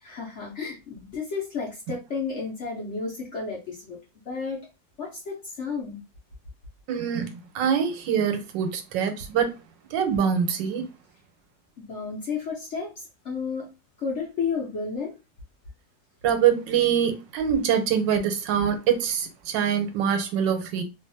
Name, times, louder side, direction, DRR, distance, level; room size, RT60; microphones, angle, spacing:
voice 1, 0.0-4.0 4.3-4.7 5.0-6.0 11.8-13.7 14.0-15.1 18.6-18.7, left 5 dB, 55° left, 0.8 m, -32 dB
voice 2, 6.9-9.5 9.9-10.9 16.2-20.8, right 8 dB, 85° right, 1.3 m, -24 dB
2.7 x 2.5 x 2.6 m
omnidirectional pair, 2.0 m